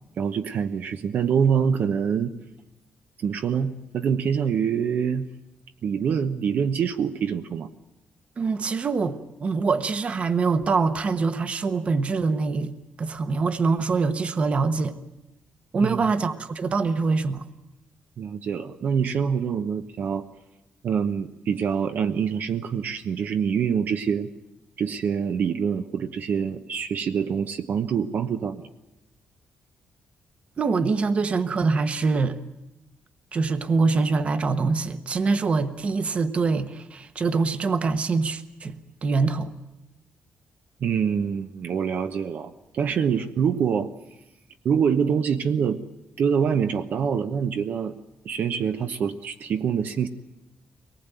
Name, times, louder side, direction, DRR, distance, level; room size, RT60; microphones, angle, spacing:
voice 1, 0.2-2.3 3.2-5.3 5.8-7.7 15.8-16.1 18.2-20.2 20.8-24.3 24.8-28.7 40.8-43.9 44.6-45.8 46.2-47.9 48.2-50.1, right 7 dB, 55° right, 1.0 m, -25 dB
voice 2, 8.4-12.7 13.0-14.9 15.7-17.5 30.6-32.4 33.3-38.7 39.0-39.5, right 4 dB, 35° right, 1.1 m, -24 dB
24.0 x 19.5 x 9.2 m
wide cardioid pair, 165°, 4 cm